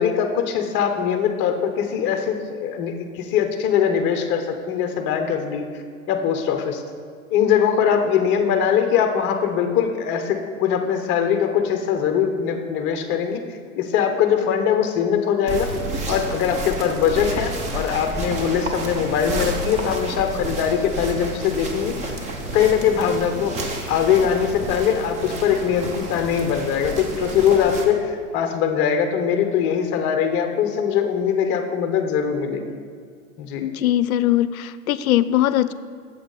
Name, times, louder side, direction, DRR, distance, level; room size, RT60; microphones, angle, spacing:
voice 1, 0.0-5.6 6.1-6.8 7.3-15.7 16.1-22.0 22.5-23.6 23.9-32.6 33.4-33.7, left 8 dB, 25° left, 6 dB, 0.8 m, -21 dB
sound 1, 15.5-27.8, right 1 dB, 15° right, 0.7 m, -30 dB
voice 2, 33.6-35.7, left 13 dB, 70° left, 15 dB, 0.5 m, -20 dB
8.7 x 7.4 x 3.9 m, 2.2 s
hypercardioid pair, 125°, 44 cm